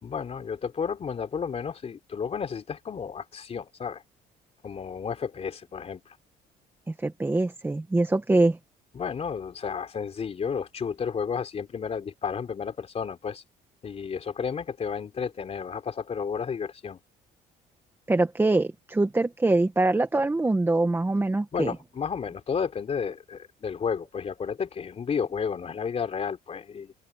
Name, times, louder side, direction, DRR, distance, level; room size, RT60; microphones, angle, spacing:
voice 1, 0.0-4.0 4.6-6.2 8.9-13.4 13.8-17.0 21.5-26.9, left 6 dB, 40° left, 3.6 m, -32 dB
voice 2, 6.9-8.6 18.1-21.7, right 2 dB, 15° right, 1.8 m, -24 dB
open air
cardioid pair, 110°, 17 cm